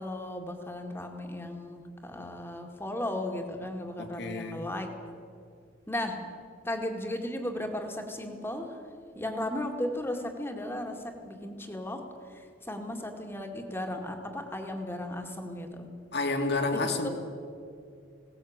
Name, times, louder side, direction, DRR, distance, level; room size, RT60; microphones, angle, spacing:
voice 1, 0.0-4.9 5.9-6.2 6.7-8.8 9.2-12.1 12.7-15.9 16.7-17.1, left 1 dB, 10° left, 3 dB, 2.2 m, -35 dB
voice 2, 4.0-4.6 16.1-17.1, left 3 dB, 55° left, 4 dB, 2.4 m, -30 dB
20.0 x 18.0 x 8.9 m, 2.4 s
head